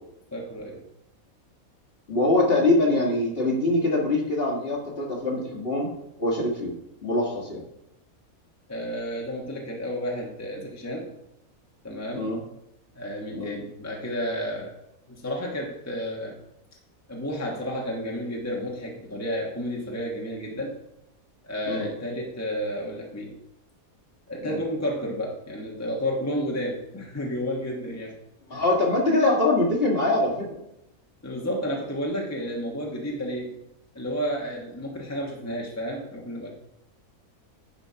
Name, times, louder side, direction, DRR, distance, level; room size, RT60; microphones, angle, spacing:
voice 1, 0.3-0.8 8.7-11.1 11.8-12.3 12.9-14.7 15.1-16.4 17.1-20.7 21.4-23.3 24.3-28.1 28.5-28.6 31.2-33.5 33.9-36.5, equal, 10° left, -1 dB, 1.3 m, -31 dB
voice 2, 2.1-5.9 6.2-6.7 7.0-7.6 12.1-12.4 13.3-13.5 21.7-21.9 24.4-24.6 28.5-30.6, left 2 dB, 40° left, -1 dB, 2.0 m, -23 dB
9.8 x 4.5 x 5.6 m, 0.82 s
omnidirectional pair, 1.5 m